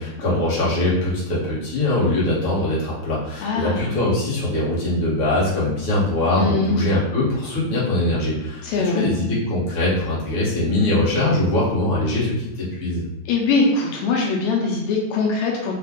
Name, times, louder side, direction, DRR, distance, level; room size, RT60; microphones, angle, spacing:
voice 1, 0.0-8.6 8.9-13.1, left 1 dB, 50° left, -8 dB, 1.9 m, -22 dB
voice 2, 3.4-3.9 6.4-6.8 8.6-9.1 13.3-15.7, left 4 dB, 80° left, -1 dB, 1.8 m, -22 dB
4.7 x 2.4 x 3.6 m, 0.97 s
omnidirectional pair, 3.4 m